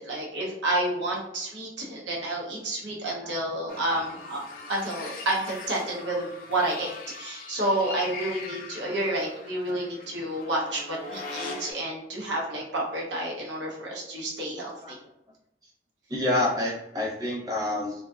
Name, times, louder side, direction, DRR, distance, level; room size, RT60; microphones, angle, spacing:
voice 1, 0.0-4.4 4.7-6.9 7.2-15.0, right 1 dB, 85° right, -2 dB, 0.7 m, -30 dB
sound 1, 3.7-11.7, left 3 dB, 50° left, 0.4 m, -41 dB
voice 2, 16.1-17.9, left 1 dB, 20° right, -5 dB, 0.7 m, -27 dB
2.5 x 2.2 x 2.3 m, 0.85 s
head